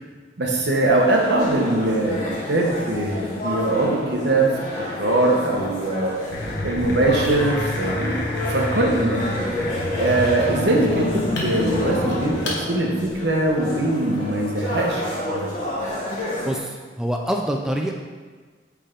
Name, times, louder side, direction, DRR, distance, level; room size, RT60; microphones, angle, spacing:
voice 1, 0.4-6.1 6.6-9.3 9.9-15.5, right 2 dB, 65° right, 0 dB, 1.0 m, -22 dB
sound 1, 0.8-16.6, left 1 dB, 45° left, 1.6 m, -30 dB
sound 2, 6.3-12.6, left 1 dB, 70° left, 1.2 m, -28 dB
voice 2, 16.5-17.9, equal, 5° right, 1 dB, 0.4 m, -25 dB
8.3 x 3.4 x 3.8 m, 1.4 s
head